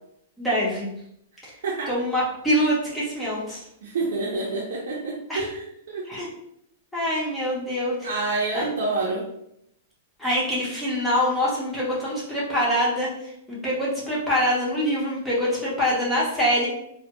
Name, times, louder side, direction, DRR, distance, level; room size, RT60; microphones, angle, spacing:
voice 1, 0.4-1.0 1.9-3.6 5.3-5.5 6.1-6.3 6.9-8.1 8.5-8.7 10.2-13.1 13.5-16.7, equal, 5° left, -7 dB, 0.8 m, -24 dB
voice 2, 3.8-6.1 8.0-9.3, right 3 dB, 75° right, -4 dB, 0.5 m, -28 dB
2.2 x 2.1 x 2.8 m, 0.75 s
hypercardioid pair, 155°, 0 cm